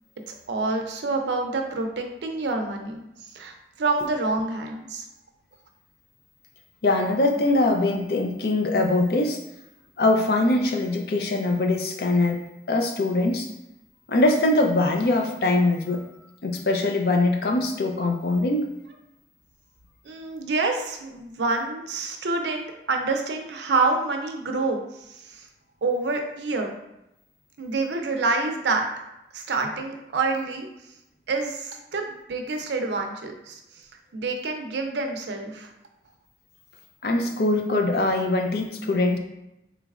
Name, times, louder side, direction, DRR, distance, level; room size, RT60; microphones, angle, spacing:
voice 1, 0.3-3.1 3.3-5.1 20.0-25.5 25.8-26.7 27.6-28.9 29.3-30.7 31.3-33.6 34.1-35.7, right 3 dB, 75° right, 3 dB, 0.5 m, -27 dB
voice 2, 6.8-9.4 10.0-12.4 12.7-13.5 14.1-16.0 16.4-18.7 37.0-39.2, left 2 dB, 55° left, 3 dB, 0.5 m, -22 dB
3.8 x 3.1 x 2.4 m, 0.90 s
head